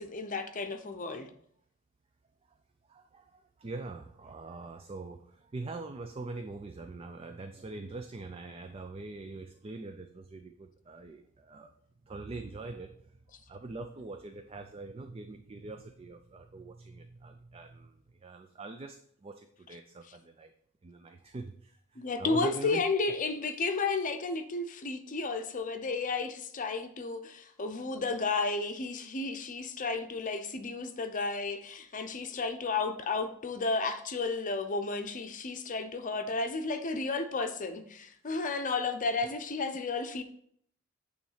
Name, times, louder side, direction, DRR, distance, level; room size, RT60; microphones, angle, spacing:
voice 1, 0.0-1.3 22.0-40.2, left 3 dB, 40° left, 0.7 m, -32 dB
voice 2, 2.9-11.7 12.1-12.9 13.5-20.5 20.8-22.9, right 3 dB, 25° right, 0.4 m, -43 dB
9.0 x 3.2 x 5.5 m
head